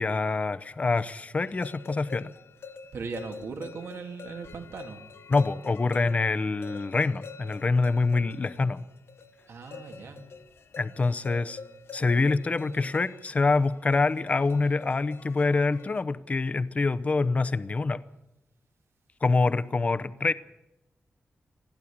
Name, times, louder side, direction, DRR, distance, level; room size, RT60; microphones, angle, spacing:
voice 1, 0.0-2.3 5.3-8.8 10.8-11.6 11.9-18.0 19.2-20.3, left 3 dB, 30° left, 14 dB, 0.7 m, -25 dB
sound 1, 1.5-16.0, left 5 dB, 65° left, 1.0 m, -47 dB
voice 2, 2.9-5.0 9.5-10.2, right 4 dB, 75° right, 4 dB, 2.8 m, -38 dB
29.0 x 11.5 x 8.8 m, 0.92 s
wide cardioid pair, 165°, 4 cm